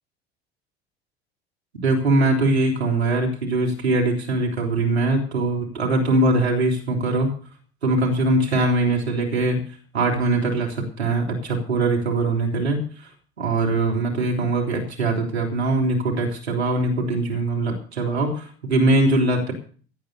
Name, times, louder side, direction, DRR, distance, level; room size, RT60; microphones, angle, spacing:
voice 1, 1.8-7.3 7.8-9.6 9.9-13.1 13.4-19.5, right 2 dB, 75° right, 0 dB, 3.4 m, -22 dB
17.5 x 8.6 x 6.8 m, 0.42 s
figure-of-eight pair, 70°, 32 cm